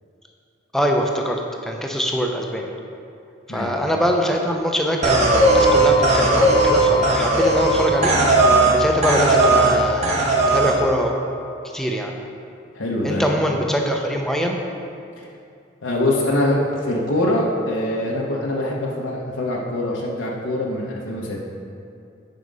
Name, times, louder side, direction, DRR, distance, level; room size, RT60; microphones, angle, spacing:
voice 1, 0.7-2.7 3.5-8.1 8.6-10.2 10.5-11.2 11.7-12.2 13.0-14.6, equal, ahead, 1 dB, 0.6 m, -23 dB
sound 1, 5.0-8.8 9.0-9.8 10.0-10.7, right 2 dB, 35° right, 1.1 m, -16 dB
voice 2, 12.7-13.3 15.2-15.3 15.8-21.4, left 1 dB, 75° left, -3 dB, 0.9 m, -23 dB
9.4 x 5.0 x 5.4 m, 2.5 s
head